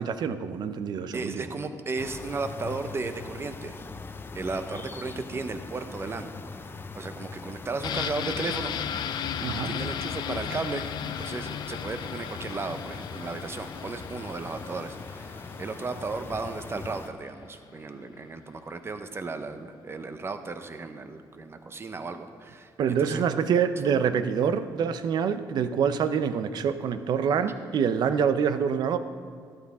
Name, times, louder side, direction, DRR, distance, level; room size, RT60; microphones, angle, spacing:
voice 1, 0.0-1.4 9.4-9.7 22.8-29.0, right 7 dB, 65° right, 10 dB, 0.7 m, -26 dB
voice 2, 1.1-3.8 4.3-6.3 6.9-8.7 9.6-22.7 23.0-23.2, right 3 dB, 35° right, 8 dB, 1.0 m, -35 dB
sound 1, 2.0-17.1, left 4 dB, 30° left, 0.7 m, -41 dB
sound 2, 7.8-17.5 17.8-17.9, left 9 dB, 70° left, 0.5 m, -36 dB
12.5 x 11.5 x 3.7 m, 2.1 s
cardioid pair, 75°, 8 cm